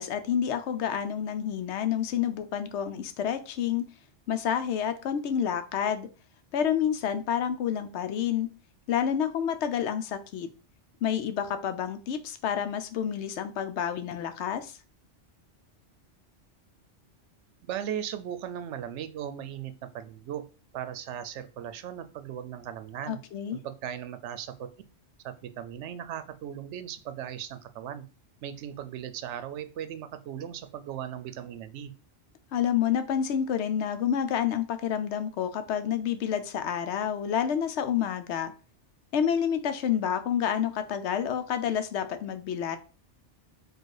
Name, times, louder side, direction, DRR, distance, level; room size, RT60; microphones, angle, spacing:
voice 1, 0.0-3.9 4.3-6.1 6.5-8.5 8.9-10.5 11.0-14.8 23.1-23.6 32.5-38.5 39.1-42.8, left 8 dB, 75° left, 10 dB, 0.8 m, -29 dB
voice 2, 17.6-20.4 20.7-23.2 23.5-24.7 25.2-28.0 28.4-31.9, right 10 dB, 80° right, 11 dB, 0.9 m, -37 dB
4.6 x 2.4 x 4.7 m, 0.35 s
omnidirectional pair, 1.2 m